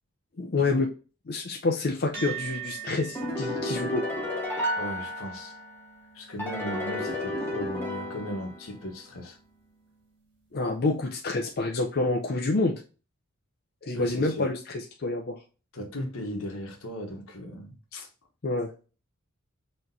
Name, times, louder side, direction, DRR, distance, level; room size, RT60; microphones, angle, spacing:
voice 1, 0.4-0.9 1.3-4.2 10.5-12.8 13.8-15.4 18.4-18.7, left 2 dB, 50° left, 0.6 m, -28 dB
sound 1, 2.1-10.8, right 9 dB, 55° right, 2.0 m, -45 dB
sound 2, 3.1-5.8 6.4-8.9, left 1 dB, 10° left, 1.3 m, -32 dB
voice 2, 4.8-5.5 6.1-9.4 13.9-14.5 15.7-18.1, equal, 75° left, 1.2 m, -37 dB
5.9 x 3.1 x 2.6 m
head